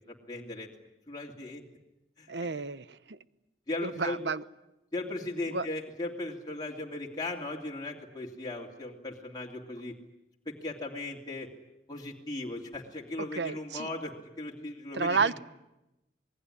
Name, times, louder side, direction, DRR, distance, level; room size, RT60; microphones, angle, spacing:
voice 1, 0.1-0.7 1.1-1.6 2.2-2.3 3.7-4.2 4.9-9.9 10.4-11.5 11.9-15.4, left 2 dB, 25° left, -1 dB, 2.8 m, -37 dB
voice 2, 2.3-3.2 3.8-4.4 5.5-5.7 13.4-13.9 14.9-15.4, right 4 dB, 80° right, 15 dB, 0.9 m, -31 dB
27.0 x 20.0 x 9.9 m, 0.93 s
head